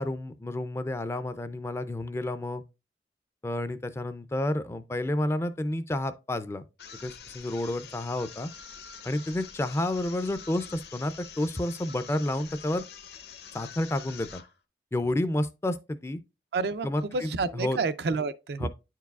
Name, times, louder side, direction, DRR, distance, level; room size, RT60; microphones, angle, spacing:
voice 1, 0.0-2.6 3.4-6.6 7.0-8.5 9.0-12.8 13.5-14.4 14.9-16.2 16.8-17.8 18.6-18.7, left 1 dB, 15° left, 0.3 m, -30 dB
sound 1, 6.8-14.6, left 7 dB, 70° left, 0.7 m, -46 dB
voice 2, 16.5-18.7, right 4 dB, 65° right, 0.4 m, -29 dB
9.6 x 4.6 x 2.3 m
head